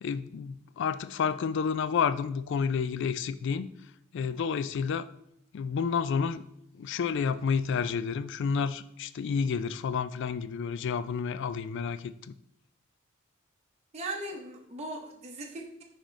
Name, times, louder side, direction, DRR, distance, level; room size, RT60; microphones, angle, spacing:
voice 1, 0.0-3.7 4.1-5.1 5.5-6.4 6.7-12.3, left 6 dB, 60° left, 14 dB, 0.3 m, -30 dB
voice 2, 13.9-15.8, right 2 dB, 30° right, 0 dB, 0.7 m, -38 dB
6.3 x 4.9 x 3.2 m, 0.77 s
head